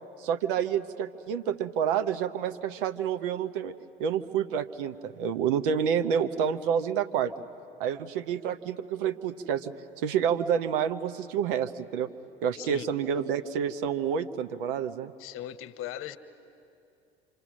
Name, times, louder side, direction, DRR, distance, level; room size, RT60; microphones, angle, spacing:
voice 1, 0.2-3.7 4.0-7.3 7.8-12.1 12.4-15.1, right 8 dB, 60° right, 9 dB, 1.0 m, -28 dB
voice 2, 15.2-16.2, left 12 dB, 45° left, 10 dB, 1.1 m, -38 dB
27.0 x 25.5 x 6.3 m, 2.6 s
figure-of-eight pair, 65°, 30 cm